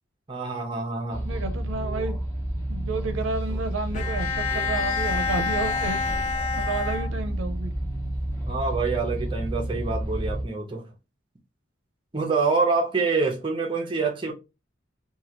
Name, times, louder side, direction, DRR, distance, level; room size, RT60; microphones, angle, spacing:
voice 1, 0.3-1.2 8.4-10.9 12.1-14.3, right 4 dB, 25° right, 0.6 m, -26 dB
sound 1, 1.1-10.4, right 1 dB, 15° left, 0.9 m, -30 dB
voice 2, 1.1-2.2 2.7-6.0 6.6-7.7, right 3 dB, 80° right, 0.5 m, -31 dB
Bowed string instrument, 3.9-7.6, left 5 dB, 40° left, 0.3 m, -29 dB
3.0 x 2.3 x 2.9 m
head